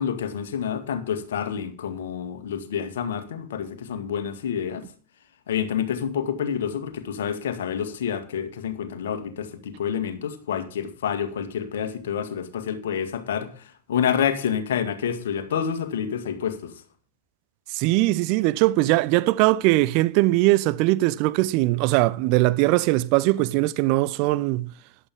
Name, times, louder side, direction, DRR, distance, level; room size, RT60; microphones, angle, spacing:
voice 1, 0.0-4.9 5.5-16.7, left 8 dB, 60° left, 1.9 m, -28 dB
voice 2, 17.7-24.7, right 18 dB, 45° right, 0.6 m, -21 dB
14.5 x 11.0 x 3.6 m
figure-of-eight pair, 90°, 0 cm